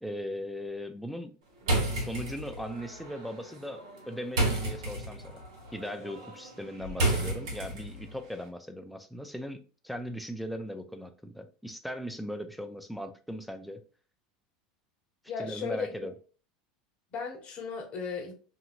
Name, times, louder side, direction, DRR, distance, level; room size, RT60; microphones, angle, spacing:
voice 1, 0.0-1.3 1.9-5.4 5.7-13.8 15.4-16.1, equal, ahead, 5 dB, 0.4 m, -39 dB
sound 1, 1.6-8.1, right 1 dB, 85° right, 1.3 m, -32 dB
voice 2, 15.3-15.9 17.1-18.3, left 5 dB, 40° left, 2 dB, 0.9 m, -35 dB
2.8 x 2.7 x 2.5 m, 0.37 s
supercardioid pair, 110°, 3 cm